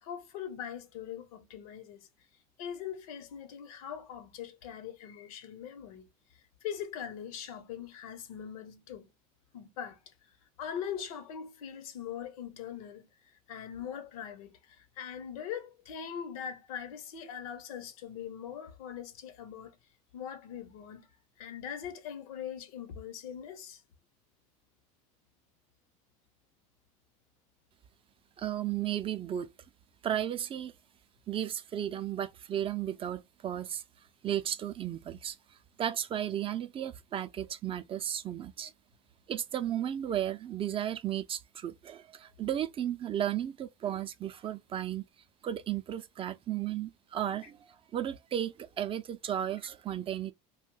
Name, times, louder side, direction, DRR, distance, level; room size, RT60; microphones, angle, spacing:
voice 1, 0.0-2.1 2.6-6.1 6.6-9.1 9.5-10.0 10.6-19.8 20.1-21.1 21.4-23.8, left 8 dB, 90° left, 0.8 m, -41 dB
voice 2, 28.4-29.5 30.0-30.7 31.3-33.8 34.2-38.7 39.3-45.0 45.4-50.3, right 10 dB, 30° right, 0.4 m, -34 dB
2.6 x 2.2 x 3.7 m
supercardioid pair, 115°, 18 cm